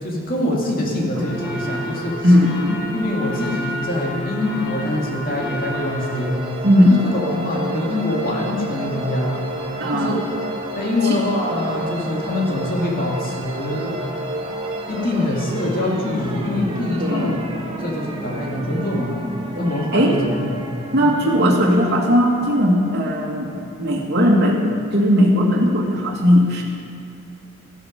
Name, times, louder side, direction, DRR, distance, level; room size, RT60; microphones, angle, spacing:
voice 1, 0.0-2.3 2.9-6.4 6.8-9.4 9.9-10.1 10.8-14.0 14.9-17.3 17.8-19.1 19.6-20.6 21.0-21.2, left 1 dB, 45° left, -2 dB, 2.4 m, -24 dB
sound 1, 1.1-6.2, equal, 60° left, 4.4 m, -30 dB
voice 2, 2.2-2.8 6.6-7.0 9.8-10.2 11.0-11.2 17.0-17.4 19.6-20.2 20.9-23.5 23.8-26.6, equal, 55° right, -2 dB, 2.4 m, -17 dB
sound 2, 5.4-24.0, right 1 dB, 25° right, 1.3 m, -31 dB
14.5 x 12.5 x 5.3 m, 2.6 s
head